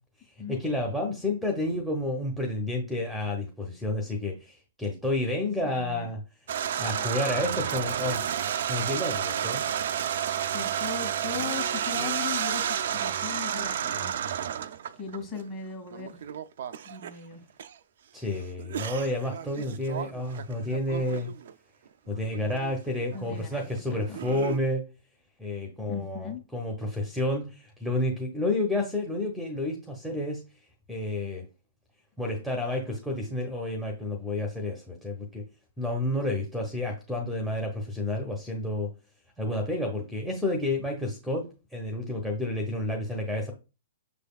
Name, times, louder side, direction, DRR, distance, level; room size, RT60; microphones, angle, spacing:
voice 1, 0.5-6.2 6.8-9.6 18.1-21.3 22.1-24.8 25.4-30.4 30.9-31.4 32.2-35.4 35.8-38.9 39.4-43.5, left 1 dB, ahead, 2 dB, 0.8 m, -30 dB
voice 2, 5.6-6.1 10.4-14.1 15.0-16.2 16.8-17.4 23.1-24.2 25.9-26.4, left 6 dB, 25° left, 2 dB, 1.7 m, -38 dB
sound 1, 6.5-15.4 15.9-17.1 17.6-17.7 18.6-21.5 22.1-22.7 23.0-24.6, right 9 dB, 60° right, 0.3 m, -31 dB
6.2 x 3.4 x 2.3 m, 0.30 s
hypercardioid pair, 120°, 0 cm